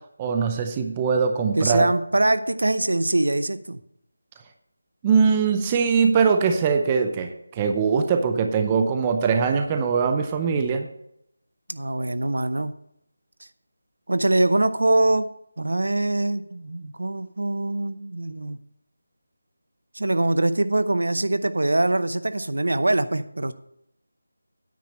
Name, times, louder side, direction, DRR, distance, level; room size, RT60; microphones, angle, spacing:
voice 1, 0.2-1.9 5.0-10.9, right 5 dB, 15° right, 6 dB, 0.6 m, -22 dB
voice 2, 1.6-3.8 11.7-12.7 14.1-15.3 15.6-18.6 19.9-23.5, right 2 dB, 80° right, 12 dB, 0.8 m, -23 dB
9.3 x 5.0 x 7.5 m, 0.76 s
figure-of-eight pair, 170°, 0 cm